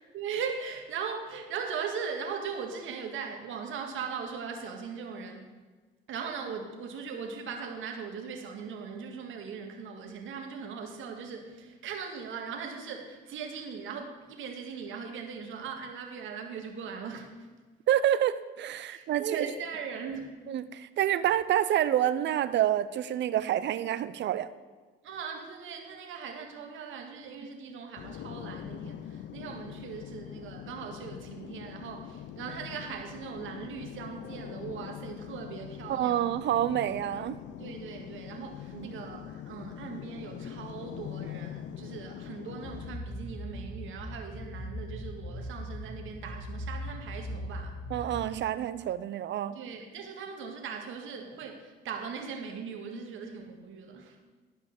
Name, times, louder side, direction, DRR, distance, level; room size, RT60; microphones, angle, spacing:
voice 1, 0.1-5.5 6.1-17.5 18.9-20.4 25.0-36.3 37.6-47.8 49.5-54.2, right 6 dB, 80° right, 3 dB, 1.7 m, -39 dB
voice 2, 17.9-19.5 20.5-24.5 35.9-37.4 38.7-38.9 47.9-49.6, right 11 dB, 65° right, 14 dB, 0.6 m, -28 dB
sound 1, 28.0-43.0, left 10 dB, 65° left, 0.5 m, -43 dB
sound 2, 42.6-48.3, equal, 40° left, 1.6 m, -39 dB
12.0 x 5.5 x 6.6 m, 1.4 s
cardioid pair, 90°, 20 cm